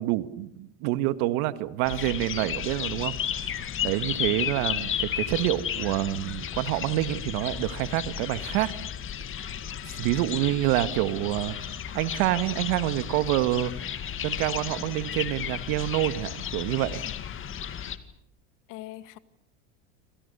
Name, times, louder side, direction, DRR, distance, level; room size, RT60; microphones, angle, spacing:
voice 1, 0.0-3.1 3.8-8.7 9.9-11.6 11.9-13.9 14.2-17.0, right 16 dB, 65° right, 12 dB, 1.9 m, -27 dB
sound 1, 1.8-18.0, left 9 dB, 35° left, 2.3 m, -33 dB
voice 2, 18.7-19.2, left 16 dB, 60° left, 11 dB, 2.1 m, -43 dB
28.0 x 26.5 x 7.0 m, 0.72 s
supercardioid pair, 105°, 35 cm